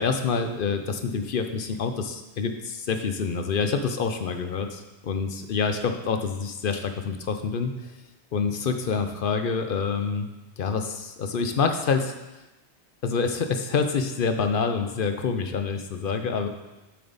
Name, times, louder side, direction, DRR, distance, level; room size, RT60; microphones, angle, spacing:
voice 1, 0.0-7.9 8.3-10.3 10.6-12.1 13.0-16.5, left 5 dB, 60° left, 7 dB, 0.7 m, -27 dB
7.8 x 6.8 x 4.0 m, 1.0 s
omnidirectional pair, 1.1 m